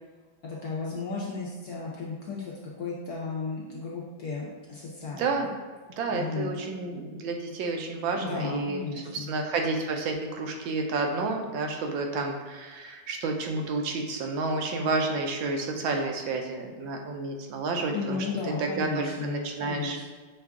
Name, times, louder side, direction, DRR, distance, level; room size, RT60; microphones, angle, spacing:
voice 1, 0.4-5.5 6.1-6.6 8.1-9.3 17.9-20.0, left 4 dB, 70° left, -4 dB, 0.9 m, -34 dB
voice 2, 5.1-5.5 6.0-8.8 9.3-18.3 18.6-20.0, right 3 dB, 80° right, 3 dB, 1.4 m, -30 dB
6.2 x 2.3 x 3.5 m, 1.3 s
omnidirectional pair, 2.1 m